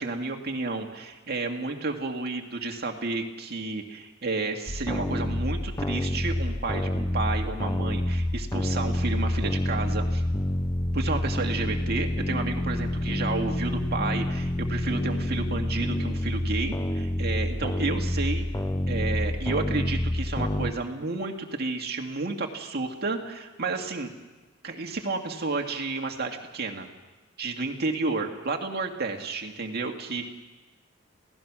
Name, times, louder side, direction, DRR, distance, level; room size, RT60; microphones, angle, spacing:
voice 1, 0.0-10.2 10.9-18.5 18.9-24.1 24.6-26.9 27.4-30.3, right 3 dB, 50° right, 3 dB, 2.1 m, -31 dB
sound 1, 4.7-20.7, left 1 dB, 15° left, 0.7 m, -28 dB
27.5 x 17.0 x 6.2 m, 1.2 s
head